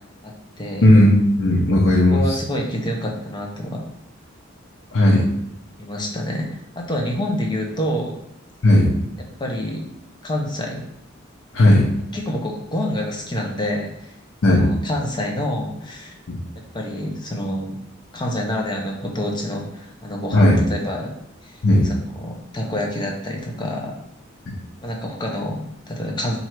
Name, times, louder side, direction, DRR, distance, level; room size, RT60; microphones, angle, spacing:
voice 1, 0.2-0.9 2.1-3.8 5.8-6.5 6.7-8.2 9.4-9.8 10.2-10.8 12.1-14.1 14.5-16.1 16.7-17.8 18.1-21.1 21.4-23.9 24.8-26.4, left 1 dB, 20° left, 0 dB, 0.7 m, -27 dB
voice 2, 0.8-1.1 1.4-2.4 4.9-5.2 8.6-8.9 11.5-11.9 14.4-14.7 16.3-16.4 20.3-20.6 21.6-21.8, left 1 dB, 75° left, -3 dB, 0.8 m, -14 dB
4.5 x 2.6 x 4.5 m, 0.76 s
head